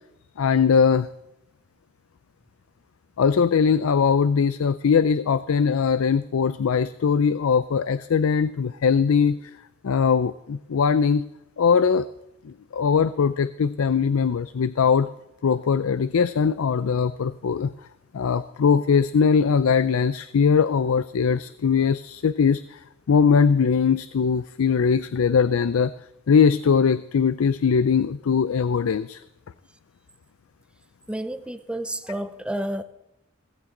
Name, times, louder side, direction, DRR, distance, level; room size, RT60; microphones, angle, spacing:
voice 1, 0.4-1.1 3.2-9.5 9.8-11.3 11.6-12.1 12.4-15.1 15.4-17.7 18.1-22.8 23.1-25.9 26.3-29.2, left 6 dB, 85° left, 15 dB, 0.4 m, -21 dB
voice 2, 31.1-32.8, right 1 dB, 5° right, 11 dB, 0.6 m, -30 dB
17.0 x 14.5 x 3.8 m, 0.86 s
head